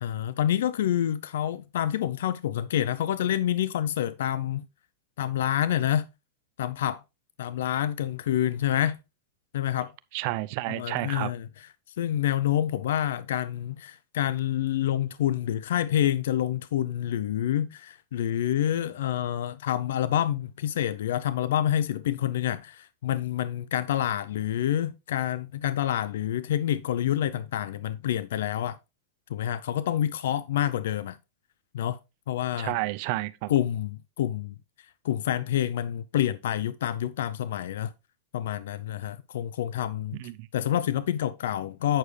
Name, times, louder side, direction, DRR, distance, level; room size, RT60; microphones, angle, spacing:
voice 1, 0.0-4.6 5.2-6.1 6.6-7.0 7.4-9.0 9.5-9.9 10.7-11.7 12.0-28.8 29.3-31.2 31.7-32.0 32.3-32.8 33.5-34.6 35.0-37.9 38.3-40.2 40.5-42.0, left 11 dB, 75° left, 0.5 m, -27 dB
voice 2, 10.1-11.3 32.6-33.5 40.1-40.5, right 19 dB, 50° right, 0.6 m, -31 dB
8.9 x 6.3 x 3.3 m
supercardioid pair, 145°, 0 cm